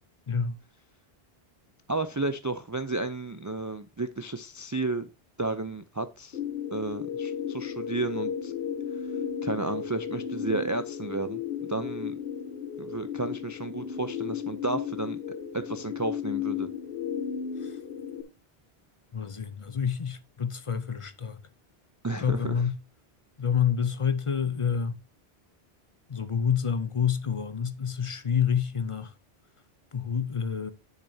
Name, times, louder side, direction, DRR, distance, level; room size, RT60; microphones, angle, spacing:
voice 1, 0.3-0.6 17.6-17.8 19.1-21.4 22.2-22.8 23.4-25.0 26.1-29.1 29.9-30.7, left 7 dB, 40° left, 0.5 m, -28 dB
voice 2, 1.9-5.1 5.4-6.4 6.7-8.5 9.4-12.2 12.8-15.2 15.5-16.7 22.0-22.6, right 3 dB, 30° right, 0.3 m, -32 dB
sound 1, 6.3-18.2, left 8 dB, 65° left, 1.1 m, -34 dB
10.0 x 6.7 x 2.7 m
omnidirectional pair, 1.0 m